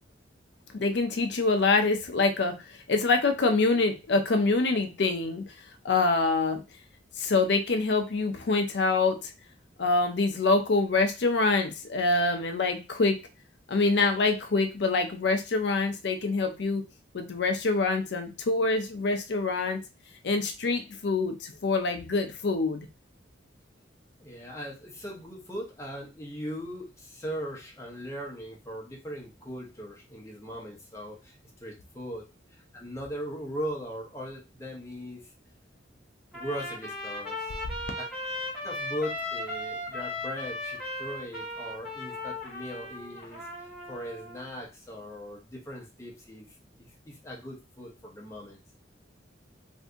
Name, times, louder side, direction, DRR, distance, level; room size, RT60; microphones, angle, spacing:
voice 1, 0.7-5.4 5.8-6.6 7.2-9.3 9.8-13.2 13.7-16.8 17.1-19.8 20.2-22.9, left 3 dB, 60° left, 6 dB, 0.5 m, -25 dB
voice 2, 24.2-35.3 36.3-37.6 38.6-43.5 43.9-46.5 47.1-48.6, equal, 15° left, -2 dB, 0.8 m, -39 dB
Trumpet, 36.3-44.5, left 1 dB, ahead, 1.5 m, -37 dB
2.6 x 2.6 x 3.4 m, 0.28 s
head